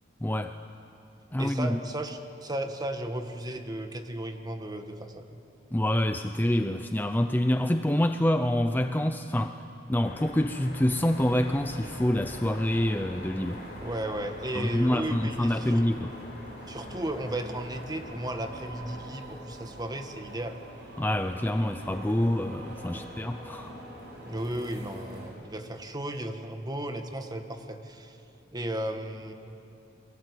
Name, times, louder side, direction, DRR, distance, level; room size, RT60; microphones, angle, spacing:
voice 1, 0.2-0.6 1.3-1.8 5.7-9.6 9.9-13.6 14.5-16.1 21.0-23.7, left 1 dB, 10° left, 7 dB, 0.6 m, -26 dB
voice 2, 1.4-5.3 13.8-15.8 16.7-20.6 22.9-23.1 24.2-28.2 28.5-29.3, right 1 dB, 20° right, 6 dB, 1.6 m, -35 dB
sound 1, 10.0-19.0, left 1 dB, 55° left, 4.8 m, -45 dB
sound 2, 11.0-25.3, equal, 60° right, 7.8 m, -45 dB
28.5 x 22.0 x 8.3 m, 2.8 s
head